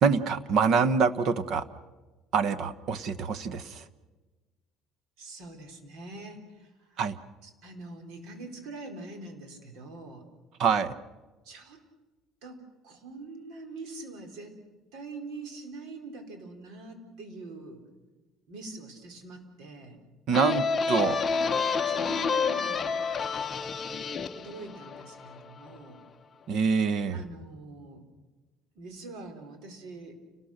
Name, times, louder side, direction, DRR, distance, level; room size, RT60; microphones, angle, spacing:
voice 1, 0.0-1.6 2.3-3.8 7.0-7.2 10.6-10.9 20.3-21.2 26.5-27.2, right 5 dB, 45° right, 14 dB, 1.1 m, -25 dB
voice 2, 5.2-7.0 7.4-10.3 11.4-11.8 12.4-14.6 14.9-17.8 18.5-20.0 21.8-23.1 24.0-24.1 24.3-26.0 27.1-28.0 28.7-30.2, right 3 dB, 65° right, 5 dB, 4.5 m, -44 dB
sound 1, 20.3-25.8, left 5 dB, 20° left, 0.9 m, -29 dB
29.5 x 19.5 x 6.6 m, 1.2 s
cardioid pair, 170°, 0 cm